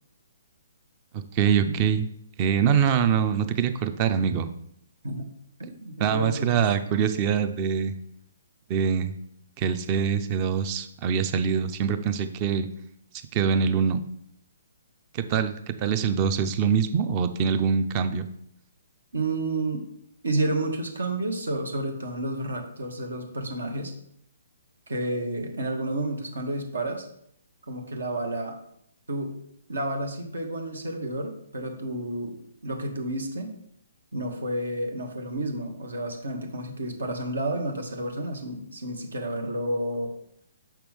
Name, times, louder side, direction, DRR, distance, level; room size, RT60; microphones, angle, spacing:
voice 1, 1.1-2.1 2.4-4.5 6.0-7.9 8.7-9.1 9.6-12.7 13.3-14.0 15.1-18.3, right 7 dB, 30° right, 11 dB, 0.5 m, -24 dB
voice 2, 5.6-6.6 19.1-19.8 20.2-23.9 24.9-27.0 27.7-28.6 29.1-29.4 29.7-32.4 32.6-33.5 34.1-40.1, right 1 dB, 75° right, 3 dB, 1.2 m, -30 dB
6.3 x 5.8 x 3.5 m, 0.70 s
figure-of-eight pair, 130°, 0 cm